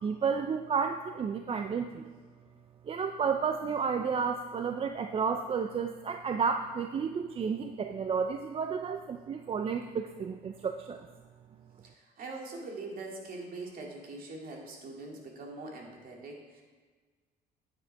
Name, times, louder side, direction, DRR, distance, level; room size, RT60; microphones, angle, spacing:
voice 1, 0.0-2.0 2.9-11.1, right 6 dB, 35° right, 6 dB, 0.5 m, -31 dB
voice 2, 11.8-16.6, right 2 dB, 55° right, 0 dB, 2.3 m, -43 dB
8.7 x 8.6 x 4.6 m, 1.4 s
cardioid pair, 110°, 17 cm